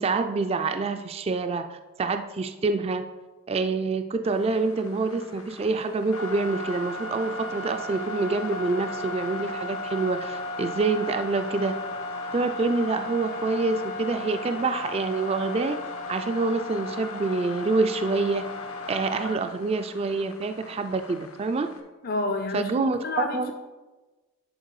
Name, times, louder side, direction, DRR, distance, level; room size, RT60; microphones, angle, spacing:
voice 1, 0.0-3.1 3.5-11.8 12.3-15.8 16.1-18.4 18.9-21.7 22.5-23.0 23.3-23.5, right 3 dB, 30° right, 8 dB, 0.3 m, -26 dB
sound 1, 4.2-21.8, left 2 dB, 90° left, 1.1 m, -36 dB
voice 2, 22.0-23.4, left 3 dB, 45° left, 6 dB, 0.5 m, -29 dB
10.0 x 4.3 x 4.8 m, 1.2 s
head